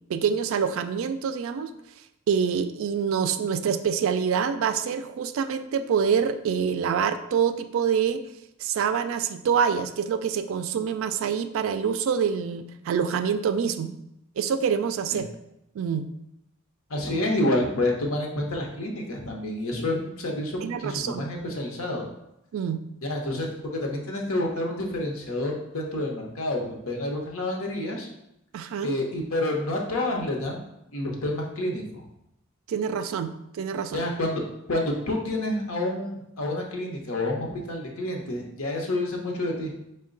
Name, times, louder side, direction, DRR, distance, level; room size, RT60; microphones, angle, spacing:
voice 1, 0.1-1.7 2.3-8.3 8.6-13.9 14.4-15.3 15.7-16.1 20.6-21.3 22.5-22.8 28.5-29.0 32.7-34.1, right 7 dB, 65° right, 9 dB, 0.3 m, -26 dB
voice 2, 16.9-22.1 23.0-28.1 28.8-30.6 30.9-32.0 33.9-34.4 34.7-39.7, left 1 dB, 75° left, 1 dB, 0.8 m, -28 dB
5.2 x 2.2 x 3.8 m, 0.82 s
head